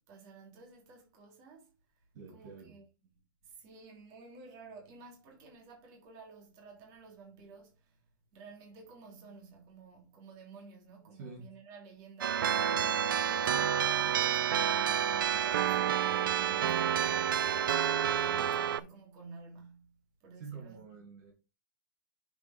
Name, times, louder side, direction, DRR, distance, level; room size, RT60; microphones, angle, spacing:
voice 1, 0.1-2.0 2.3-2.8 3.4-8.1 8.3-12.7 13.1-15.8 16.1-17.9 18.2-21.1, right 4 dB, 35° right, 3.2 m, -53 dB
voice 2, 2.1-2.8 11.1-11.5 12.7-12.9 20.4-21.3, right 5 dB, 50° right, 2.7 m, -47 dB
sound 1, 12.2-18.8, right 9 dB, 80° right, 0.7 m, -29 dB
7.2 x 6.1 x 3.5 m
hypercardioid pair, 160°, 11 cm